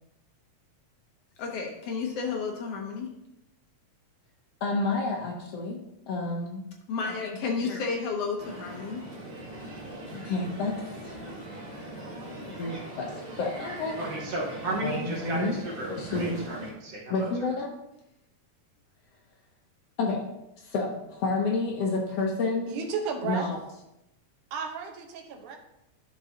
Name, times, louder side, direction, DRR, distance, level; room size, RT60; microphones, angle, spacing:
voice 1, 1.4-3.1 4.6-5.8 6.1-9.0 10.1-10.8 11.0-11.1 12.5-14.0 14.7-15.6 15.9-16.4 17.1-17.7 20.0-20.2 20.6-22.8 23.2-23.6, left 3 dB, 70° left, 1.5 m, -30 dB
Crowd, 8.4-16.7, right 1 dB, 45° right, 0.5 m, -40 dB
voice 2, 14.0-17.3, right 2 dB, 60° right, 2.0 m, -34 dB
voice 3, 22.7-23.5 24.5-25.6, right 5 dB, 75° right, 2.4 m, -33 dB
11.5 x 6.0 x 2.8 m
omnidirectional pair, 3.7 m